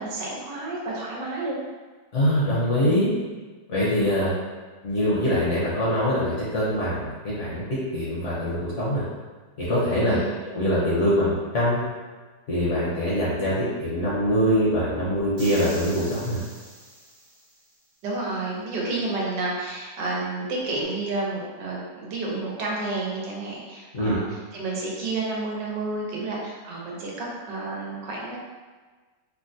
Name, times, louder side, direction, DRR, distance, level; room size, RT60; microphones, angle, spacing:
voice 1, 0.0-1.6 10.0-10.4 18.0-28.4, right 2 dB, 85° right, -3 dB, 1.3 m, -30 dB
voice 2, 2.1-3.1 3.7-4.3 4.8-7.6 7.9-9.0 9.6-10.2 10.4-11.9 12.5-16.4 23.9-24.2, equal, 55° left, -8 dB, 0.9 m, -23 dB
sound 1, 15.4-17.7, right 1 dB, 55° right, 0.7 m, -43 dB
3.6 x 2.1 x 2.6 m, 1.4 s
omnidirectional pair, 1.9 m